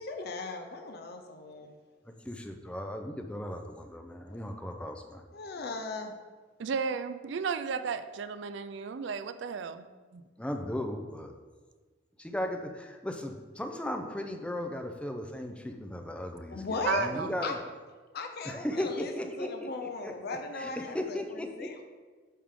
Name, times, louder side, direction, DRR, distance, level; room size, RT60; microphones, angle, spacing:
voice 1, 0.0-1.7 4.3-4.4 5.3-6.1 16.5-17.1 17.4-17.6 18.1-21.8, left 3 dB, 55° left, 5 dB, 0.6 m, -37 dB
voice 2, 2.2-5.2 10.4-11.3 12.2-17.6 18.4-21.8, left 1 dB, 5° left, 4 dB, 0.5 m, -37 dB
voice 3, 6.6-9.9 10.1-10.2 16.9-17.5, right 6 dB, 65° right, 11 dB, 0.4 m, -33 dB
9.4 x 3.6 x 3.7 m, 1.4 s
head